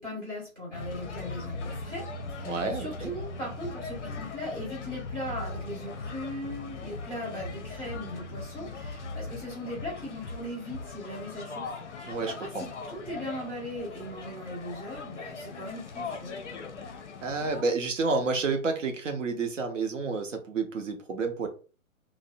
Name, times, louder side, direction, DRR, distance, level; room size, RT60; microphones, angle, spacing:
voice 1, 0.0-16.3, equal, 10° right, 0.6 m, -39 dB
sound 1, 0.7-17.6, left 3 dB, 55° left, 0.5 m, -39 dB
voice 2, 2.5-3.1 12.1-12.6 17.2-21.5, right 4 dB, 60° right, 0.7 m, -30 dB
2.5 x 2.0 x 2.6 m
figure-of-eight pair, 130°, 43 cm